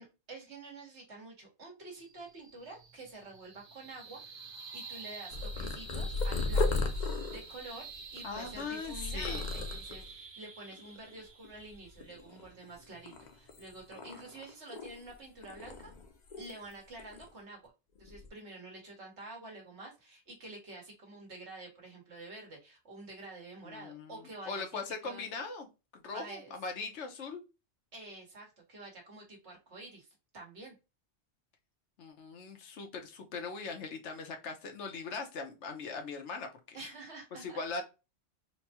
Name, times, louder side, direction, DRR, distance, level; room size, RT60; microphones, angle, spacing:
voice 1, 0.0-4.2 4.7-6.7 7.3-7.9 8.1-15.9 16.3-17.7 18.0-24.6 25.0-25.2 26.1-26.5 27.9-30.1 30.3-30.7 36.7-37.8, right 2 dB, 75° right, -1 dB, 1.9 m, -48 dB
sound 1, 1.9-14.5, right 5 dB, 40° right, 0.4 m, -49 dB
Purr, 5.3-10.1 10.7-11.2 11.4-12.7 13.1-15.1 15.4-16.7 17.0-17.3 18.0-18.3, left 3 dB, 50° left, 0.6 m, -36 dB
voice 2, 8.2-9.5 23.6-25.7 25.9-27.4 32.0-36.8 37.3-37.8, left 4 dB, 90° left, 4 dB, 1.1 m, -40 dB
4.4 x 2.2 x 2.8 m, 0.28 s
omnidirectional pair, 1.2 m